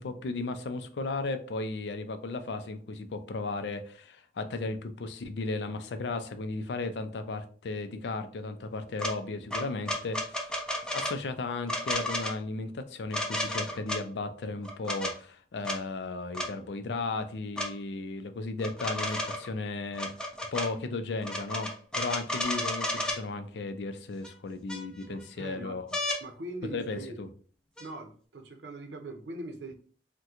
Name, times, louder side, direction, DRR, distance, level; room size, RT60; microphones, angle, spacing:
voice 1, 0.0-10.5 10.9-20.1 20.5-25.9 26.7-27.3, left 3 dB, 70° left, 0.4 m, -35 dB
sound 1, 9.0-9.1 9.5-11.1 11.7-12.3 13.1-14.0 14.6-15.1 15.6-15.8 16.3-16.5 17.6-17.7 18.6-19.5 19.9-20.7 21.2-23.2 24.2-24.3 24.7-25.2 25.9-26.2 27.8-27.9, left 1 dB, 5° left, 0.4 m, -32 dB
voice 2, 25.1-25.8 26.2-27.2 27.8-29.7, right 1 dB, 80° right, 0.6 m, -41 dB
3.6 x 2.1 x 2.8 m
head